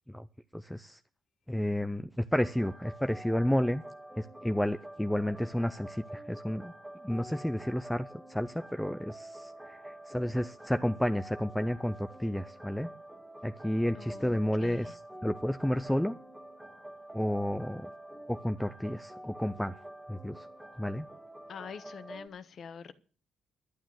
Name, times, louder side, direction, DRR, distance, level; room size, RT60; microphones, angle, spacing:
voice 1, 0.5-1.0 1.5-3.8 4.2-6.7 7.0-12.9 13.4-16.2 17.1-17.9 18.3-19.8 20.1-20.5 20.8-21.1, equal, 5° left, 0.6 m, -31 dB
sound 1, 2.4-22.3, right 1 dB, 10° right, 1.8 m, -48 dB
voice 2, 14.0-14.9 21.5-22.9, left 7 dB, 60° left, 1.1 m, -45 dB
11.5 x 8.6 x 7.8 m
cardioid pair, 90°, 0 cm